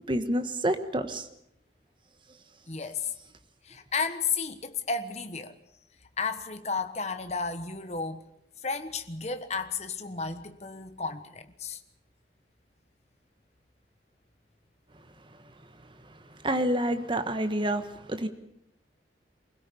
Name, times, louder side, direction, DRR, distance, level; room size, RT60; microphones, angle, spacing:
voice 1, 0.1-1.3 16.4-18.3, right 1 dB, 25° right, 1.3 m, -28 dB
voice 2, 2.7-3.1 3.6-5.6 6.2-8.3 8.6-11.8, left 5 dB, 40° left, 1.3 m, -33 dB
24.5 x 17.0 x 7.1 m
head